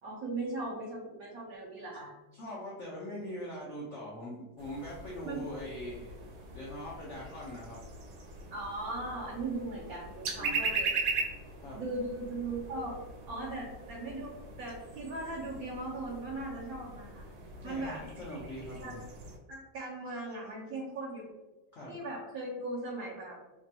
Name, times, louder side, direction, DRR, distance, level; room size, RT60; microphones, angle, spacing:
voice 1, 0.0-2.2 5.2-5.4 8.5-11.0 11.7-13.0 13.3-17.2 17.6-18.0 18.8-19.0 19.5-21.3 21.8-23.4, right 2 dB, 65° right, -5 dB, 0.9 m, -38 dB
voice 2, 2.3-6.1 6.5-7.8 10.4-10.7 11.6-11.8 17.6-19.0 21.7-21.9, equal, 80° left, -6 dB, 0.6 m, -42 dB
sound 1, 4.6-19.4, right 4 dB, 90° right, 1.4 m, -40 dB
3.3 x 2.2 x 2.7 m, 1.1 s
omnidirectional pair, 2.1 m